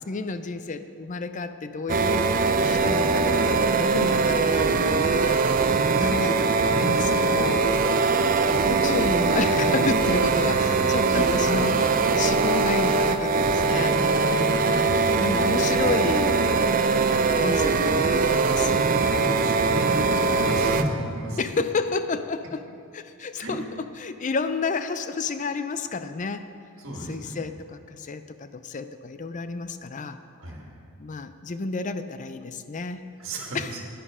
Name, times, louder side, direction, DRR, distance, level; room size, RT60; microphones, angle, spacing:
voice 1, 0.1-2.3 2.6-5.5 5.8-7.7 8.6-14.0 14.8-16.4 17.4-18.9 21.4-26.5 27.1-30.2 31.0-33.0 33.5-33.7, left 4 dB, 35° left, 11 dB, 0.5 m, -31 dB
sound 1, 1.9-20.8, right 4 dB, 40° right, 0.4 m, -22 dB
voice 2, 8.0-8.6 11.1-11.2 14.4-14.8 19.0-21.4 23.4-23.6 26.8-27.4 30.4-30.7 33.2-33.8, right 1 dB, 60° right, 0 dB, 1.9 m, -34 dB
10.5 x 10.0 x 4.9 m, 2.5 s
head